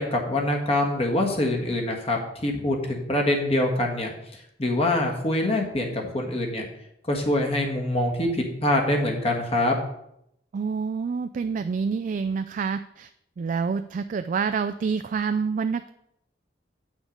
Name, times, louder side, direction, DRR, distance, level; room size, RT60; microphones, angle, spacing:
voice 1, 0.0-6.7 7.1-9.8, left 1 dB, 35° left, 1 dB, 1.5 m, -25 dB
voice 2, 10.5-13.1 13.4-15.9, right 5 dB, 45° right, 10 dB, 0.3 m, -27 dB
8.4 x 6.2 x 5.2 m, 0.78 s
head